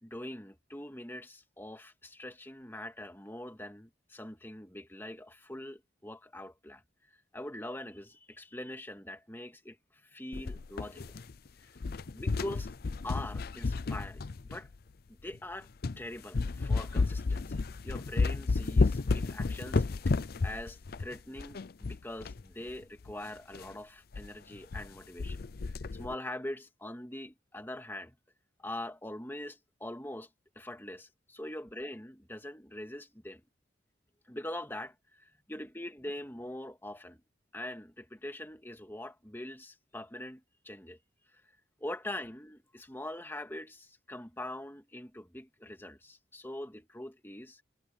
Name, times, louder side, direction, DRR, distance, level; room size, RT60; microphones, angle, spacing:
voice 1, 0.0-6.8 7.3-11.2 11.6-11.7 12.1-12.7 13.0-14.7 15.1-15.7 16.0-20.1 20.4-28.2 28.6-30.3 30.6-33.4 34.3-37.2 37.5-41.0 41.8-47.6, left 1 dB, 10° left, 2.2 m, -43 dB
sound 1, 10.3-11.5 11.8-14.8 15.3-15.4 15.8-16.0 16.3-22.4 22.7-22.8 23.0-23.1 23.5-23.7 24.1-24.3 24.5-24.9 25.2-26.1, left 3 dB, 55° left, 0.5 m, -32 dB
head